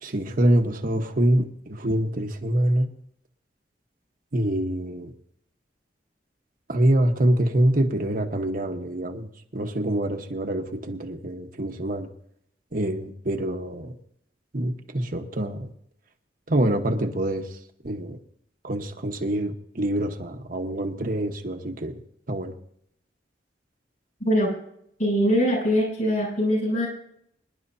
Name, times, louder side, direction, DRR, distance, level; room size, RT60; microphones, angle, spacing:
voice 1, 0.0-2.9 4.3-5.1 6.7-12.1 12.7-13.9 14.5-15.7 16.5-18.2 18.6-22.0 22.3-22.5, right 1 dB, 55° right, 4 dB, 1.2 m, -25 dB
voice 2, 25.0-26.9, equal, 50° left, -2 dB, 7.4 m, -22 dB
25.0 x 11.0 x 2.8 m, 0.70 s
head